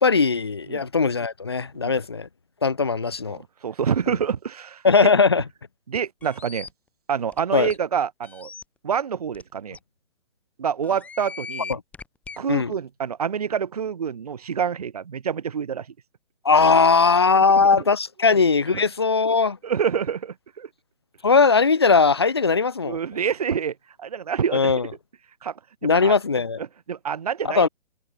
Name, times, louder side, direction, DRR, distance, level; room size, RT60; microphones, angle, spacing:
voice 1, 0.0-2.3 2.6-3.4 4.8-5.4 7.5-7.7 12.5-12.7 16.4-19.6 21.2-23.0 24.5-24.9 25.8-26.6 27.4-27.7, left 4 dB, 25° left, 0.6 m, -19 dB
voice 2, 3.3-4.8 5.9-6.7 7.1-8.5 8.8-9.8 10.6-11.8 12.4-15.9 17.5-17.7 18.7-18.8 19.6-20.7 22.8-24.7 25.4-26.1 26.6-27.7, right 7 dB, 35° right, 0.7 m, -27 dB
sound 1, 6.2-6.7 7.3-7.4 7.7-7.8 8.2-8.6 9.3-9.4 9.7-9.8 10.8-12.4, left 5 dB, 5° left, 2.8 m, -38 dB
hypercardioid pair, 165°, 34 cm